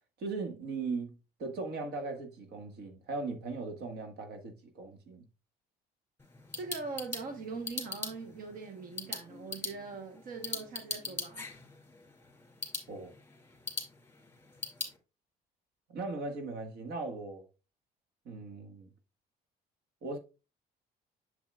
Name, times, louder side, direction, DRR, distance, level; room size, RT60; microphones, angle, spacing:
voice 1, 0.2-5.2 12.9-13.1 15.9-17.4 18.2-18.9 20.0-20.2, right 3 dB, 75° right, 1.7 m, -38 dB
sound 1, 6.2-15.0, left 4 dB, 15° left, 2.4 m, -42 dB
voice 2, 6.6-11.5, right 4 dB, 55° right, 1.2 m, -42 dB
7.4 x 7.0 x 2.4 m
cardioid pair, 110°, 17 cm